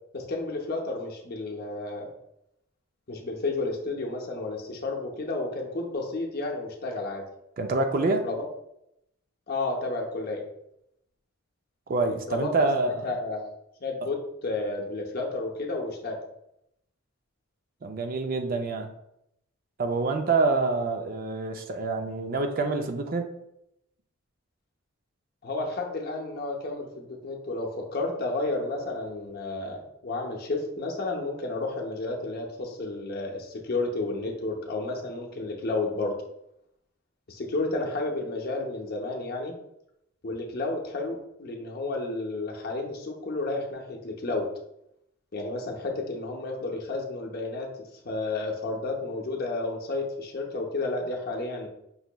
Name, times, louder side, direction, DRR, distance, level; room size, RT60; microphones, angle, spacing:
voice 1, 0.1-2.1 3.1-7.2 8.2-8.5 9.5-10.4 12.3-12.7 13.0-13.5 13.8-14.2 14.4-16.2 25.4-36.1 37.3-39.5 40.2-44.5 45.3-47.7 48.0-51.7, left 2 dB, 45° left, 0 dB, 0.7 m, -31 dB
voice 2, 7.6-8.2 11.9-13.1 17.8-18.9 19.8-23.3, right 3 dB, 45° right, 5 dB, 0.4 m, -26 dB
5.4 x 2.9 x 2.2 m, 0.80 s
head